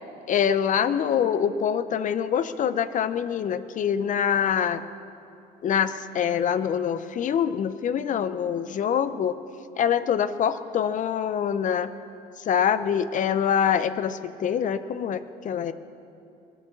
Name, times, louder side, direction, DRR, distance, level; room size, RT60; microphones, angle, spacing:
voice 1, 0.3-4.8 5.6-9.4 9.8-11.9 12.5-15.7, left 8 dB, 50° left, 12 dB, 0.7 m, -25 dB
20.5 x 8.1 x 7.4 m, 2.7 s
cardioid pair, 110°, 17 cm